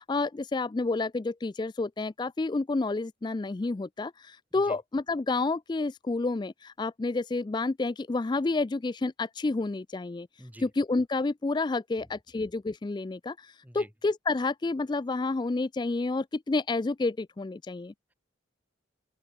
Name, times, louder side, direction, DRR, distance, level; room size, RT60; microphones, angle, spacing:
voice 1, 0.0-17.9, left 3 dB, 20° left, 0.3 m, -30 dB
voice 2, 10.4-10.7 12.0-12.1 13.6-13.9, equal, 10° right, 6.3 m, -48 dB
open air
head